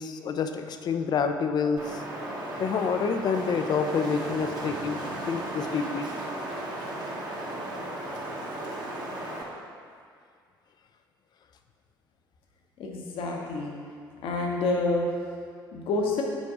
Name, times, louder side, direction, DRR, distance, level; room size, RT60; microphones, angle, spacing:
voice 1, 0.0-2.0 2.6-5.0 5.3-6.1, left 5 dB, 40° left, 7 dB, 0.5 m, -28 dB
Wind, 1.8-9.4, right 1 dB, 35° right, 1.1 m, -35 dB
voice 2, 12.8-13.7 14.2-15.1 15.7-16.2, left 3 dB, 55° left, 0 dB, 1.0 m, -28 dB
5.2 x 4.4 x 4.8 m, 2.2 s
figure-of-eight pair, 55°, 11 cm